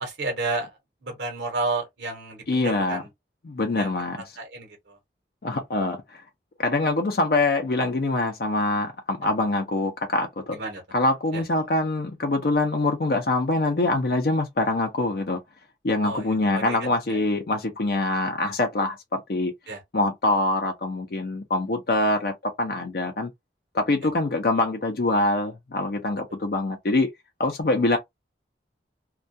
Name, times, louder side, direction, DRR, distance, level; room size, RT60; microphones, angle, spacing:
voice 1, 0.0-3.1 3.8-3.9 4.4-5.0 10.5-10.8 11.3-11.4 16.0-16.3 16.5-17.2 19.7-19.8, right 3 dB, 80° right, 0.9 m, -31 dB
voice 2, 2.5-3.0 3.4-4.2 5.4-6.2 6.6-10.6 10.9-15.4 15.8-19.5 19.9-23.3 23.7-27.1 27.4-28.0, left 2 dB, 55° left, 0.5 m, -24 dB
2.2 x 2.2 x 2.6 m
head